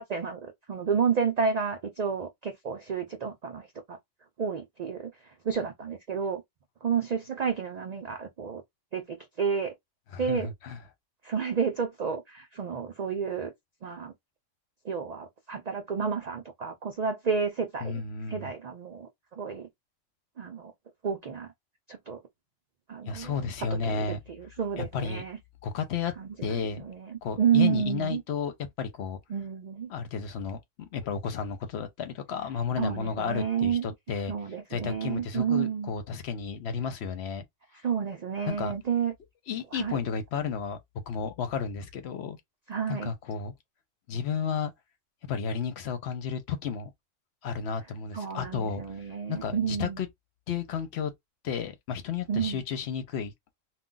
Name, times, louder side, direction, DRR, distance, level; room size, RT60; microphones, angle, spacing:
voice 1, 0.0-4.0 4.4-5.1 5.4-6.4 6.8-8.6 8.9-9.7 10.2-10.5 11.2-13.5 13.8-14.1 14.8-18.0 18.3-19.7 20.4-20.7 21.0-21.5 21.9-22.2 22.9-23.5 23.8-25.4 26.2-28.2 29.3-29.9 32.8-33.9 34.3-35.9 37.8-39.1 39.7-40.0 42.7-43.1 48.1-50.0 52.3-52.6, right 6 dB, 90° right, 0.3 m, -30 dB
voice 2, 10.1-10.8 17.8-18.5 23.0-24.2 24.8-25.2 25.6-26.1 26.4-26.9 27.2-29.2 29.9-34.3 34.7-37.4 38.5-38.7 39.5-40.8 41.1-42.4 42.9-43.5 44.1-44.7 45.2-46.9 47.4-48.8 49.3-50.1 50.5-51.1 51.4-53.3, left 6 dB, 65° left, 0.8 m, -32 dB
2.3 x 2.2 x 3.7 m
omnidirectional pair, 1.3 m